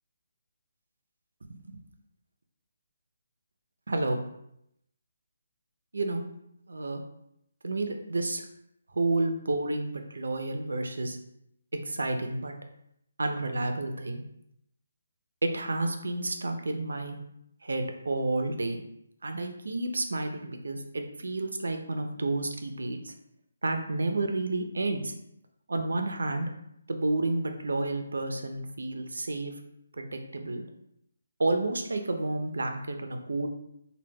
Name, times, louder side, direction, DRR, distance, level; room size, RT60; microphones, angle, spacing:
voice 1, 3.9-4.2 5.9-6.2 6.7-7.0 7.6-8.4 8.9-11.2 11.9-12.5 13.2-14.2 15.4-17.2 17.6-18.8 19.2-23.1 23.6-25.1 25.7-26.5 26.9-29.5 30.0-30.6 31.4-33.5, right 2 dB, 90° right, 5 dB, 0.4 m, -30 dB
2.2 x 2.1 x 3.2 m, 0.77 s
hypercardioid pair, 165°, 0 cm